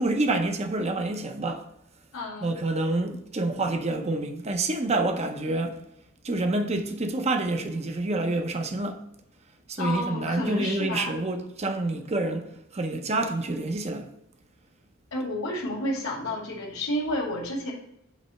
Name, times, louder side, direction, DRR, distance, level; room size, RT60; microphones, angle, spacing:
voice 1, 0.0-1.7 2.4-5.8 6.2-9.0 9.7-14.1, right 2 dB, 30° right, 0.7 m, -27 dB
voice 2, 2.1-2.5 9.8-11.2 15.1-17.7, left 1 dB, 80° left, 2.3 m, -30 dB
8.2 x 3.3 x 5.6 m
head